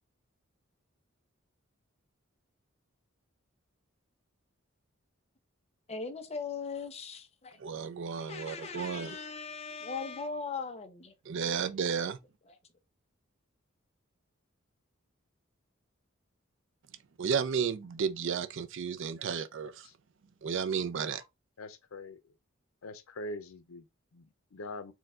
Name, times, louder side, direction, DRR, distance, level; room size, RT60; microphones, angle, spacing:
voice 1, 5.9-7.6 8.2-11.1 12.5-12.6, left 5 dB, 30° left, 0.6 m, -39 dB
voice 2, 7.6-9.2 11.3-12.2 17.2-19.9 20.4-21.2, right 6 dB, 65° right, 0.5 m, -33 dB
voice 3, 19.6-19.9 21.1-21.2 21.6-22.3 22.8-24.9, left 1 dB, 85° left, 0.6 m, -44 dB
4.5 x 2.3 x 3.6 m
head